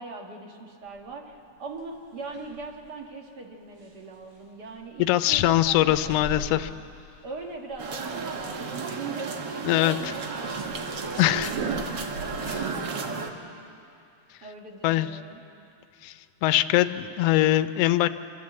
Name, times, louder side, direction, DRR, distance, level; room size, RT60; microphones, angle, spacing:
voice 1, 0.0-1.3 1.6-6.6 7.2-12.3 12.7-13.3 14.4-15.4, right 3 dB, 40° right, 2 dB, 1.9 m, -41 dB
sound 1, 0.8-1.1 1.6-2.8 3.7-7.0 7.3-12.5, left 1 dB, 80° right, 4.1 m, -43 dB
voice 2, 5.0-6.7 9.6-10.0 11.2-11.5 12.5-12.7 14.8-15.1 16.0-16.1 16.4-18.1, left 14 dB, 80° left, 11 dB, 1.4 m, -22 dB
sound 2, 7.8-13.3, right 5 dB, 55° right, 1.2 m, -32 dB
25.5 x 13.5 x 8.5 m, 2.6 s
omnidirectional pair, 3.4 m